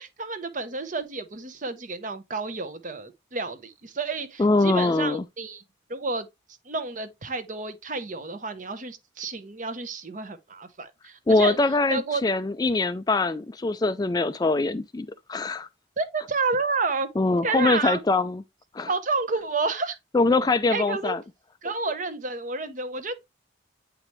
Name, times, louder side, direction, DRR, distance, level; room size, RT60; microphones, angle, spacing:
voice 1, 0.0-5.6 5.9-6.3 6.6-11.6 11.9-12.2 12.6-12.8 16.0-17.1 17.4-18.0 18.9-20.0 20.7-21.2 21.6-23.2, right 3 dB, 40° right, 0.8 m, -30 dB
voice 2, 4.4-5.2 11.3-15.7 17.2-18.4 18.7-18.9 20.1-21.2, left 3 dB, 20° left, 0.3 m, -23 dB
8.4 x 4.9 x 3.0 m
head